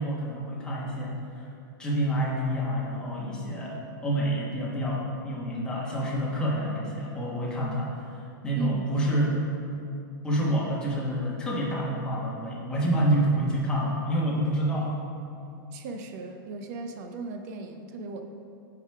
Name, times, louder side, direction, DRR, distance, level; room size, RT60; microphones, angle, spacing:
voice 1, 0.0-1.5 1.8-8.0 8.4-9.4 10.2-14.9, right 1 dB, 5° left, -6 dB, 1.3 m, -28 dB
voice 2, 8.5-8.9 15.7-18.2, right 3 dB, 45° right, 5 dB, 0.7 m, -36 dB
7.8 x 4.9 x 4.7 m, 2.5 s
supercardioid pair, 160°, 12 cm